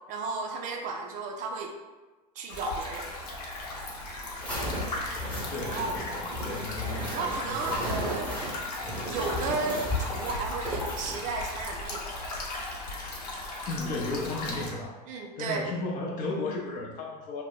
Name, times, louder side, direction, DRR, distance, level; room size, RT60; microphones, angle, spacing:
voice 1, 0.1-1.7 2.4-3.1 5.6-5.9 6.3-6.7 7.1-8.3 9.0-12.1 15.1-15.7, right 4 dB, 40° right, 2 dB, 0.4 m, -34 dB
sound 1, 2.5-14.7, left 2 dB, 70° left, 0.9 m, -37 dB
sound 2, 4.4-11.2, left 1 dB, 5° left, 0.9 m, -35 dB
voice 2, 5.5-8.2 13.7-15.0 15.4-17.4, left 2 dB, 40° left, 0 dB, 0.6 m, -35 dB
2.6 x 2.1 x 3.7 m, 1.2 s
hypercardioid pair, 100°, 21 cm